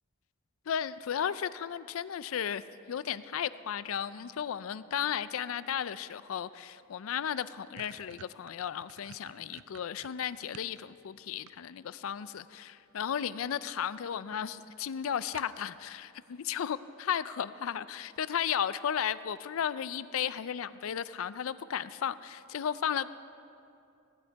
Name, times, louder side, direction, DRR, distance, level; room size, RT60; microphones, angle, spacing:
voice 1, 0.7-2.6 2.9-23.1, left 8 dB, 85° left, 16 dB, 0.4 m, -34 dB
sound 1, 6.9-7.0 7.3-10.8 11.2-12.0 13.1-13.5 13.9-14.0 14.3-14.4 14.7-14.8 15.3-15.9, right 9 dB, 80° right, 0.3 m, -53 dB
16.0 x 11.0 x 4.6 m, 2.6 s
head